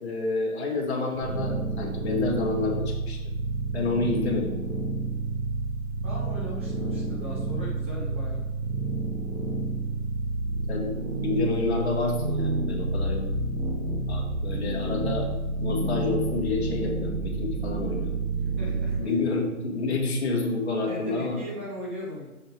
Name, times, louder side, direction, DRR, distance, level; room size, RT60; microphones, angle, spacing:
voice 1, 0.0-3.2 3.7-4.5 10.7-13.3 14.1-15.3 15.6-18.1 19.0-21.4, left 3 dB, 45° left, -2 dB, 2.0 m, -29 dB
sound 1, 1.1-19.0, right 2 dB, 85° right, 1.7 m, -29 dB
voice 2, 6.0-8.4 18.6-19.1 19.9-20.0 20.8-22.5, equal, 10° right, -4 dB, 0.7 m, -38 dB
7.5 x 6.9 x 3.5 m, 1.1 s
hypercardioid pair, 160°, 43 cm